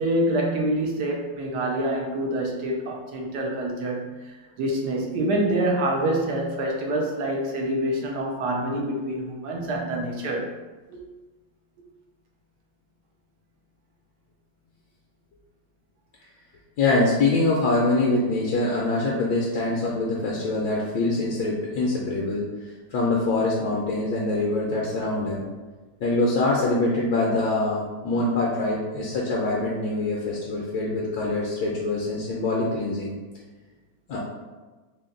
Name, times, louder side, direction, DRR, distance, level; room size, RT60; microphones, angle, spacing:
voice 1, 0.0-10.5 10.9-11.0, right 1 dB, 70° right, 0 dB, 1.1 m, -26 dB
voice 2, 16.8-22.5 22.9-25.4 26.0-33.1 34.1-34.2, left 2 dB, 70° left, -3 dB, 1.1 m, -24 dB
4.1 x 2.2 x 3.8 m, 1.3 s
omnidirectional pair, 2.0 m